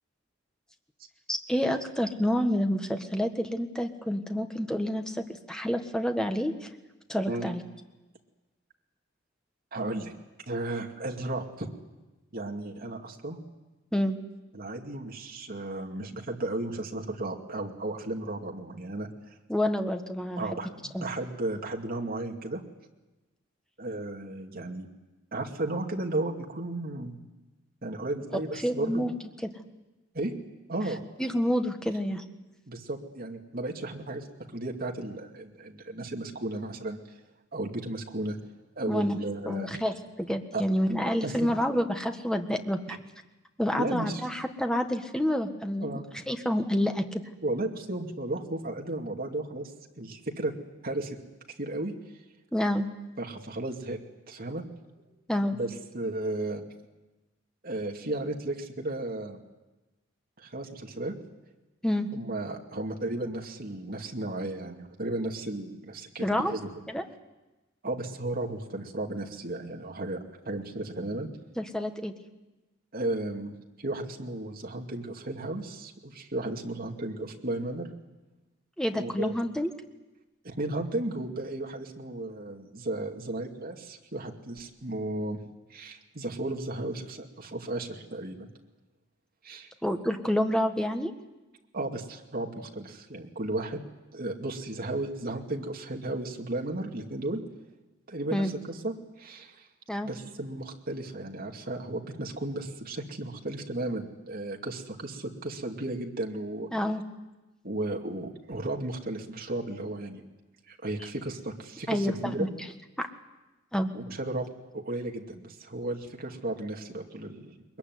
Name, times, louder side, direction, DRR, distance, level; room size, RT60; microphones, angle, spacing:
voice 1, 1.3-6.7 7.1-7.6 13.9-14.2 19.5-20.4 20.9-21.0 28.6-29.1 31.2-32.2 38.9-39.2 39.5-43.0 43.6-47.2 52.5-52.9 55.3-55.6 61.8-62.1 66.2-66.5 66.9-67.0 71.6-72.1 78.8-79.7 89.8-91.1 98.3-98.5 99.9-100.1 106.7-107.0 111.9-112.5 113.0-113.1 113.7-113.9, equal, 5° left, 5 dB, 1.5 m, -28 dB
voice 2, 9.7-10.1 10.5-11.7 12.3-13.4 14.5-19.1 20.4-22.6 23.8-24.9 25.3-27.2 27.8-29.1 30.1-30.3 30.7-31.0 32.7-34.3 34.5-37.0 37.5-38.4 38.8-39.7 40.5-40.6 41.2-41.5 42.9-43.0 43.8-44.2 45.8-46.0 47.4-49.7 50.0-50.5 50.8-51.2 51.6-51.9 53.2-54.0 54.3-54.6 55.0-55.1 55.5-56.6 57.6-59.4 60.4-61.1 62.1-66.7 67.8-71.3 72.9-77.9 78.9-79.3 80.4-85.4 85.7-88.5 89.4-89.7 91.7-93.8 94.1-97.4 98.1-98.5 98.8-99.7 100.0-106.7 107.6-110.2 110.7-112.5 113.9-117.5, right 2 dB, 50° right, 1 dB, 2.5 m, -34 dB
22.0 x 22.0 x 9.5 m, 1.1 s
head